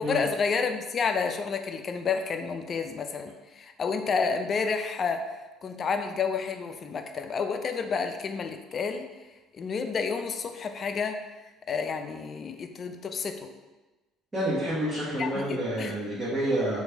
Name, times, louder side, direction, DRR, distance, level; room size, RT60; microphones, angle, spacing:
voice 1, 0.0-9.1 9.5-11.3 11.7-13.5 15.2-15.9, left 5 dB, 45° left, 7 dB, 0.3 m, -30 dB
voice 2, 14.3-16.8, right 1 dB, 20° right, -11 dB, 1.3 m, -28 dB
3.0 x 2.5 x 3.4 m, 1.2 s
hypercardioid pair, 70°, 0 cm